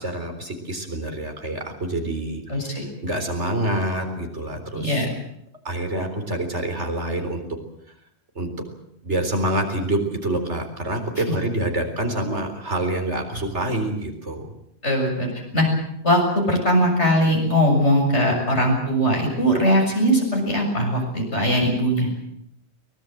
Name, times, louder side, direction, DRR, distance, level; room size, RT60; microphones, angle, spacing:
voice 1, 0.0-5.1 5.6-7.4 8.4-8.5 9.0-14.5, right 1 dB, 90° right, 5 dB, 4.4 m, -27 dB
voice 2, 2.5-2.8 4.7-5.1 14.8-15.3 15.5-15.7 16.0-16.2 16.5-22.1, equal, 85° left, 1 dB, 7.4 m, -20 dB
23.5 x 20.5 x 7.8 m, 0.77 s
omnidirectional pair, 1.1 m